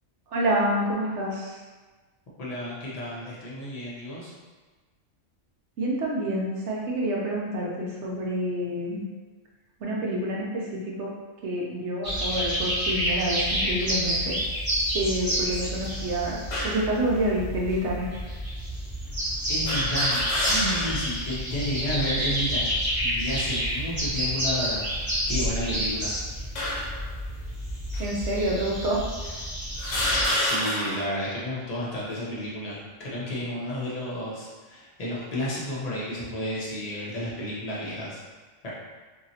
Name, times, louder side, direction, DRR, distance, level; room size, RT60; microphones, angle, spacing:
voice 1, 0.3-1.6 5.8-9.0 9.8-11.1 11.4-14.3 14.9-16.4 16.6-18.1 28.0-29.4, right 1 dB, 70° right, -3 dB, 0.9 m, -28 dB
voice 2, 2.4-4.3 19.5-22.7 23.0-24.9 25.3-26.2 30.4-38.2 38.6-38.7, equal, 35° left, -6 dB, 0.8 m, -31 dB
sound 1, 12.0-30.2, equal, 20° right, 0.7 m, -29 dB
sound 2, 16.5-16.9 17.7-17.8 19.7-21.1 21.5-21.6 22.8-23.2 23.9-24.2 25.1-25.9 26.6-27.1 27.9-28.1 28.9-29.0 29.8-31.1, left 1 dB, 85° left, 1.1 m, -29 dB
3.0 x 2.7 x 2.7 m, 1.3 s
omnidirectional pair, 1.3 m